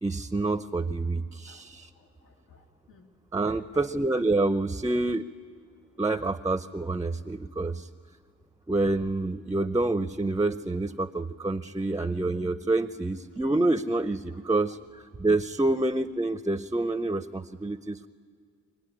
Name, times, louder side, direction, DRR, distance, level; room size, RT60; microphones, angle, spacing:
voice 1, 0.0-1.9 3.3-5.2 6.0-7.9 8.7-18.1, right 2 dB, 10° right, 11 dB, 0.6 m, -27 dB
voice 2, 1.9-3.1 3.4-3.8 11.8-11.9 14.3-14.4 14.6-14.8, left 3 dB, 85° left, 3 dB, 2.3 m, -54 dB
24.5 x 17.0 x 10.0 m, 2.2 s
cardioid pair, 90°, 30 cm